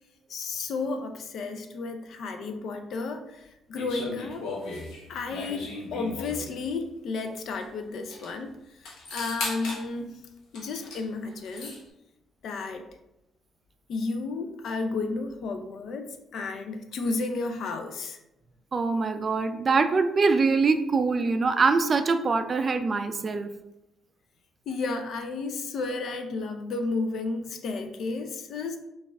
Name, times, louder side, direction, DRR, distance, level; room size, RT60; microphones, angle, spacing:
voice 1, 0.3-4.5 5.1-10.1 10.5-11.8 12.4-12.8 13.9-16.1 16.3-18.2 24.7-28.8, left 3 dB, 70° left, 6 dB, 0.4 m, -32 dB
sound 1, 3.8-6.5 7.6-7.7 7.9-8.3 8.8-9.8 10.5-11.0 11.3-11.8, left 3 dB, 90° left, 0.8 m, -36 dB
voice 2, 18.7-23.5, right 4 dB, 40° right, 9 dB, 0.3 m, -24 dB
4.1 x 2.4 x 3.3 m, 0.87 s
cardioid pair, 90°, 0 cm